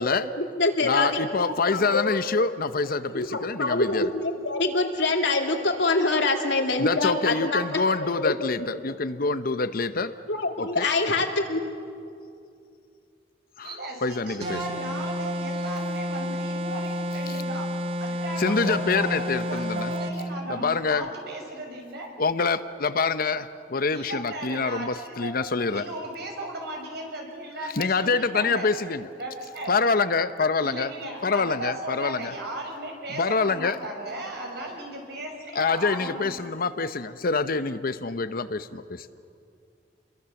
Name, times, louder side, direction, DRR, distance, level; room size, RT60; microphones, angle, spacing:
voice 1, 0.0-2.1 3.1-7.9 8.2-8.9 10.3-11.6, left 2 dB, 85° left, 3 dB, 2.6 m, -26 dB
voice 2, 0.8-4.1 6.8-10.1 10.6-10.9 13.6-14.6 17.3-17.4 18.4-19.9 20.5-21.1 22.2-25.9 27.8-29.1 29.7-30.9 31.2-32.3 33.1-33.8 35.5-39.1, left 4 dB, 55° left, 12 dB, 0.8 m, -26 dB
voice 3, 13.6-17.7 18.0-22.1 23.9-25.4 25.6-28.7 29.2-29.7 30.6-36.3, right 1 dB, 65° right, 1 dB, 6.0 m, -36 dB
sound 1, 14.4-20.2, equal, 35° right, 1.6 m, -30 dB
29.0 x 22.5 x 7.1 m, 2.4 s
head